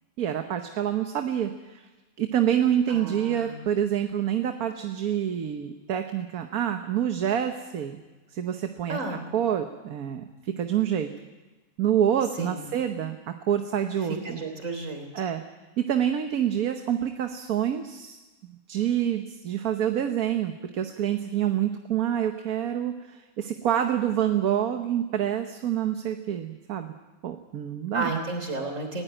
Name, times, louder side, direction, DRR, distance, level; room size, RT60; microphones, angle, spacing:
voice 1, 0.2-1.8 2.2-8.0 8.3-9.0 9.3-11.1 11.8-14.4 15.1-15.4 15.8-18.2 18.7-26.9 27.2-28.2, right 10 dB, 75° right, 6 dB, 1.5 m, -27 dB
voice 2, 2.9-3.6 8.9-9.3 12.4-12.7 14.2-15.2 27.9-29.0, right 2 dB, 55° right, 4 dB, 3.7 m, -33 dB
19.5 x 16.5 x 8.9 m, 1.2 s
omnidirectional pair, 1.6 m